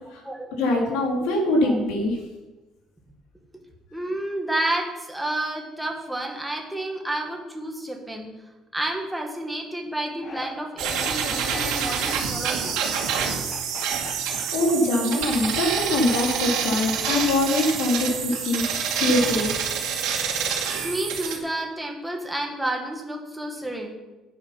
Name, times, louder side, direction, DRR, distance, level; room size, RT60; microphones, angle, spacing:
voice 1, 0.6-2.2 14.3-19.6, left 1 dB, 85° left, 0 dB, 3.5 m, -23 dB
voice 2, 3.9-8.3 8.7-12.7 20.8-23.9, right 1 dB, 5° right, 1 dB, 1.6 m, -30 dB
sound 1, 10.2-10.5 10.8-11.7 12.0-12.2 12.6-15.1, left 4 dB, 25° left, 1.0 m, -40 dB
sound 2, 10.8-21.4, right 7 dB, 85° right, 2.4 m, -27 dB
11.0 x 9.3 x 6.0 m, 1.1 s
cardioid pair, 180°, 0 cm